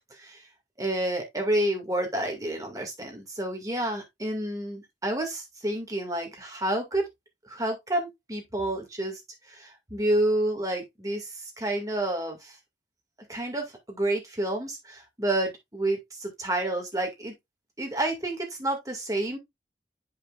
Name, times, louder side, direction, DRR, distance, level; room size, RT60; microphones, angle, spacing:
voice 1, 0.1-0.4 0.8-7.0 7.4-9.2 9.5-12.6 13.3-17.3 17.8-19.4, right 1 dB, 20° right, 2.0 m, -29 dB
8.8 x 5.5 x 2.4 m
head